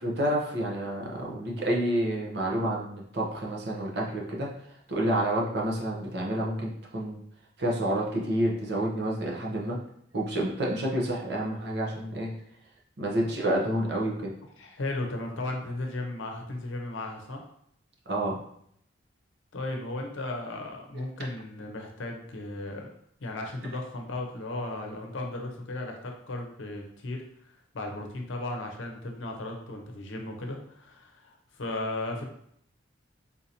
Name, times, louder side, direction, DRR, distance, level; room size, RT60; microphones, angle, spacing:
voice 1, 0.0-4.5 4.9-7.2 7.6-9.8 10.1-12.3 13.0-14.3 18.1-18.4, right 1 dB, 60° right, -2 dB, 0.7 m, -29 dB
voice 2, 14.6-17.4 19.5-22.9 23.2-27.2 27.7-32.2, left 2 dB, 80° left, 2 dB, 0.7 m, -35 dB
3.7 x 2.6 x 2.8 m, 0.70 s
head